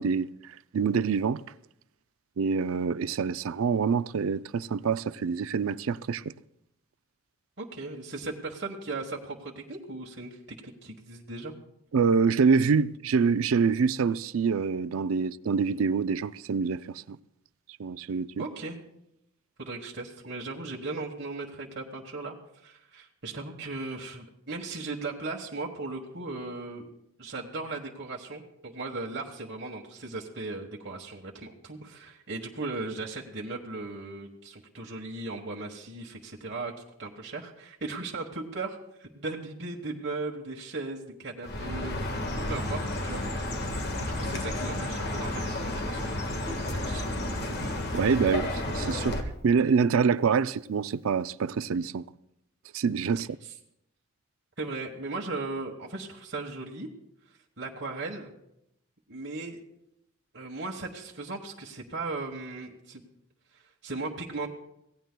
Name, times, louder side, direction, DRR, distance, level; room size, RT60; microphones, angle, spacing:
voice 1, 0.0-1.4 2.4-6.3 11.9-17.2 17.8-18.4 47.9-49.2 49.4-52.0 52.7-53.3, right 5 dB, 80° right, 0.4 m, -26 dB
voice 2, 7.6-11.5 18.4-18.8 19.6-26.9 27.2-36.7 37.0-42.1 42.5-43.7 44.1-46.5 46.8-47.1 54.6-56.9 57.6-58.3 59.1-59.6 60.3-63.0 63.5-64.5, right 3 dB, 55° right, 1.3 m, -37 dB
Chirp tweet, 41.4-49.2, left 1 dB, 50° left, 1.5 m, -31 dB
25.0 x 17.5 x 2.2 m
head